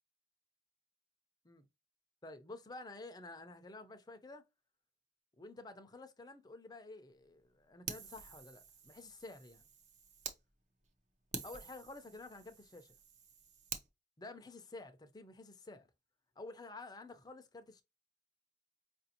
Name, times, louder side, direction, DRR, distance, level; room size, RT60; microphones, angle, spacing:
voice 1, 2.2-4.4 5.4-9.7 11.4-13.0 14.2-15.9 16.4-17.8, left 2 dB, 20° left, 0.5 m, -51 dB
Fire, 7.9-10.4 10.8-10.9 11.3-13.9, right 6 dB, 40° right, 0.7 m, -48 dB
4.8 x 2.6 x 2.7 m
head